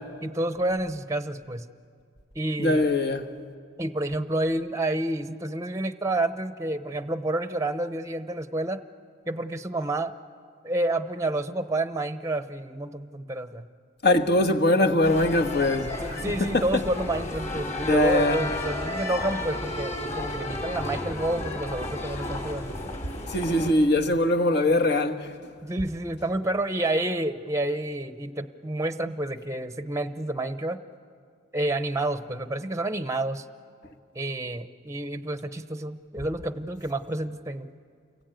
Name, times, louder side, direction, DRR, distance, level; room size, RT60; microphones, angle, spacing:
voice 1, 0.2-1.7 2.3-2.8 3.8-8.8 9.3-10.1 10.6-13.7 16.0-22.9 25.6-30.8 31.5-33.5 34.1-37.7, right 1 dB, 15° right, 0.8 m, -29 dB
voice 2, 2.6-3.3 14.0-16.6 17.9-18.4 23.3-25.3, left 1 dB, 50° left, 1.5 m, -22 dB
sound 1, 15.0-23.7, left 1 dB, 35° left, 5.0 m, -33 dB
29.0 x 21.5 x 9.1 m
head